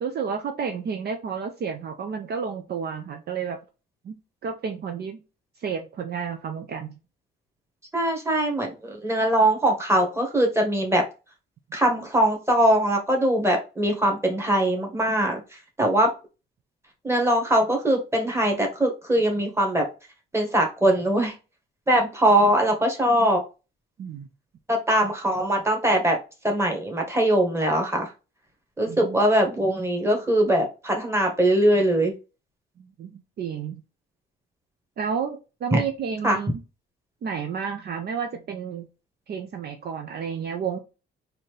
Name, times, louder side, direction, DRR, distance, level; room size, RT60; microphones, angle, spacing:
voice 1, 0.0-3.6 4.0-4.2 4.4-5.2 5.6-6.9 24.0-24.3 28.9-29.2 32.8-33.8 35.0-36.6 37.2-38.9 39.3-40.8, right 6 dB, 55° right, 5 dB, 0.6 m, -31 dB
voice 2, 7.9-11.0 11.7-15.4 15.8-16.1 17.0-19.8 20.3-21.3 21.9-23.4 24.7-26.2 26.4-28.1 28.8-32.1 35.7-35.8 36.2-36.4, right 1 dB, 15° right, 2 dB, 1.6 m, -21 dB
4.1 x 2.8 x 3.3 m, 0.30 s
cardioid pair, 90°, 20 cm